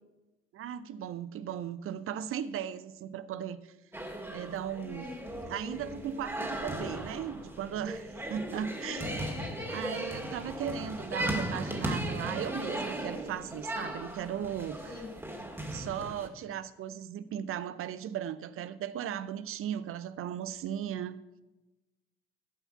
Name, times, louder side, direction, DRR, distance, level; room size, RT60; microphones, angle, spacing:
voice 1, 0.5-3.7 4.3-5.1 5.5-9.1 9.7-14.9 15.7-21.2, right 9 dB, 50° right, 15 dB, 0.6 m, -37 dB
sound 1, 3.9-16.3, right 1 dB, 10° right, 2.1 m, -37 dB
voice 2, 5.0-5.4 8.9-10.0 14.8-15.1, left 3 dB, 75° left, -3 dB, 3.0 m, -44 dB
14.0 x 5.7 x 5.6 m, 1.0 s
figure-of-eight pair, 45°, 29 cm